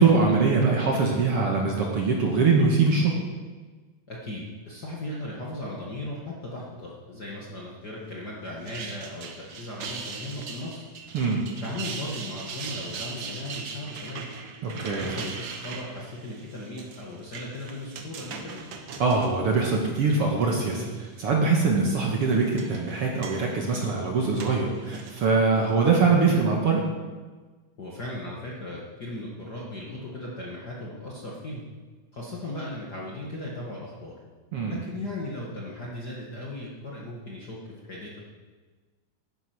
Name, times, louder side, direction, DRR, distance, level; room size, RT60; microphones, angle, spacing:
voice 1, 0.0-3.1 11.1-11.4 14.6-15.2 19.0-26.8 34.5-34.8, right 4 dB, 55° right, -1 dB, 2.0 m, -23 dB
voice 2, 4.1-10.8 11.6-14.3 14.7-18.6 25.5-25.8 27.8-31.6 32.1-34.2 34.7-38.2, left 1 dB, 40° left, -4 dB, 1.7 m, -37 dB
sound 1, 8.4-20.2 20.6-21.2 22.0-25.3, right 5 dB, 75° right, 1.0 m, -40 dB
11.5 x 10.0 x 6.0 m, 1.3 s
omnidirectional pair, 3.8 m